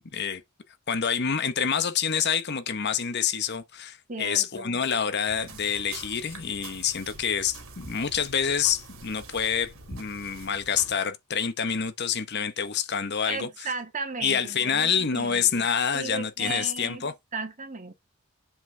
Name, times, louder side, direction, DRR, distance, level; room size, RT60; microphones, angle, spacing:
voice 1, 0.9-13.7 14.2-17.1, left 7 dB, 50° left, 0.9 m, -27 dB
voice 2, 4.1-4.8 13.3-15.7 15.9-17.0 17.3-17.9, right 4 dB, 35° right, 1.7 m, -35 dB
sound 1, 5.3-11.0, right 3 dB, 65° right, 2.3 m, -45 dB
7.7 x 5.9 x 3.3 m
head